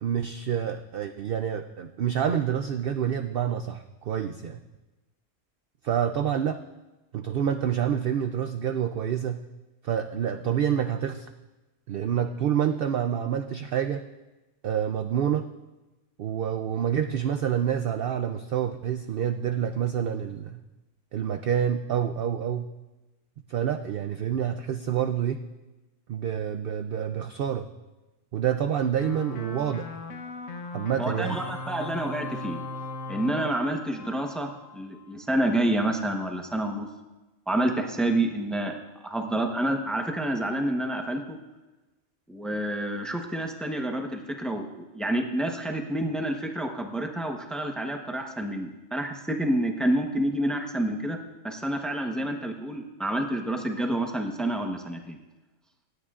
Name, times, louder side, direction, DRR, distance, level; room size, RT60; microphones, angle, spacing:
voice 1, 0.0-4.6 5.8-6.6 7.1-9.4 9.8-11.3 11.9-14.0 14.6-15.5 16.2-20.6 21.1-22.7 23.5-25.4 26.1-27.7 28.3-30.0 30.7-31.4, right 9 dB, 60° right, 8 dB, 0.6 m, -27 dB
sound 1, 29.0-35.1, left 3 dB, 75° left, 1.2 m, -38 dB
voice 2, 31.0-32.6 33.1-36.9 37.5-38.7 39.0-41.4 42.3-51.2 51.4-55.2, right 1 dB, ahead, 3 dB, 0.8 m, -28 dB
27.0 x 9.5 x 2.5 m, 1.1 s
omnidirectional pair, 1.3 m